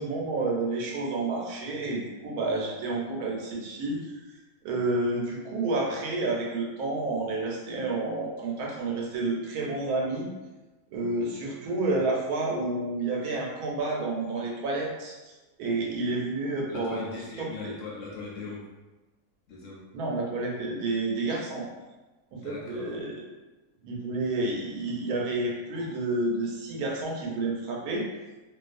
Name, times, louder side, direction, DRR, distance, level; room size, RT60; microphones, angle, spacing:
voice 1, 0.0-4.0 4.6-10.3 10.9-15.3 15.6-17.0 17.4-17.5 19.9-21.7 22.3-23.2 23.8-28.1, right 2 dB, 85° right, -2 dB, 1.1 m, -30 dB
voice 2, 16.7-18.7 19.5-19.9 22.4-23.0, left 3 dB, 70° left, -3 dB, 0.9 m, -39 dB
2.5 x 2.3 x 2.5 m, 1.1 s
omnidirectional pair, 1.5 m